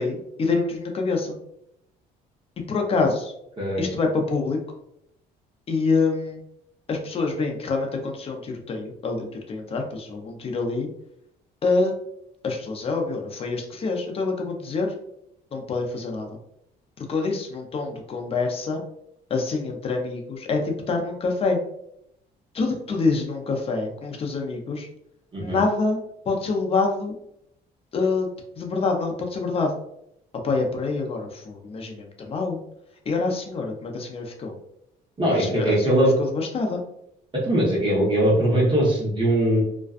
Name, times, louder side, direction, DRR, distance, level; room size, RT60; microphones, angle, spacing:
voice 1, 0.0-1.4 2.7-3.3 3.8-4.6 5.7-6.4 6.9-10.9 11.6-12.0 12.4-14.9 15.5-16.4 17.1-18.8 19.3-21.6 22.5-24.9 25.4-26.0 26.3-27.1 27.9-28.3 28.6-29.7 30.4-32.6 33.1-34.6 35.3-36.8, left 3 dB, 35° left, 2 dB, 0.5 m, -26 dB
voice 2, 3.6-3.9 25.3-25.6 35.2-36.1 37.4-39.6, right 1 dB, 30° right, -4 dB, 0.9 m, -21 dB
2.5 x 2.2 x 2.3 m, 0.76 s
cardioid pair, 110°, 17 cm